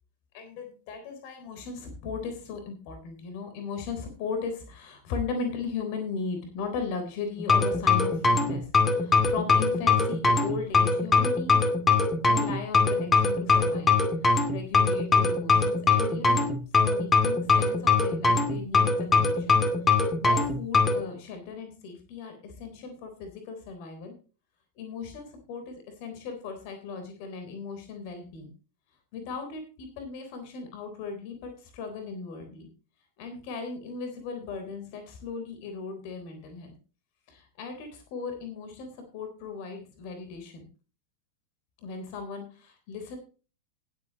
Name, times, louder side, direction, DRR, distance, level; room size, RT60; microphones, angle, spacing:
voice 1, 0.3-11.6 12.2-13.9 14.5-16.4 16.7-19.6 20.0-24.1 24.8-28.5 29.1-32.7 33.2-36.7 37.3-40.6 41.8-43.2, left 5 dB, 45° left, 6 dB, 3.5 m, -37 dB
sound 1, 7.4-21.0, left 4 dB, 15° left, 2.4 m, -22 dB
19.0 x 8.6 x 2.9 m, 0.35 s
figure-of-eight pair, 90°, 0 cm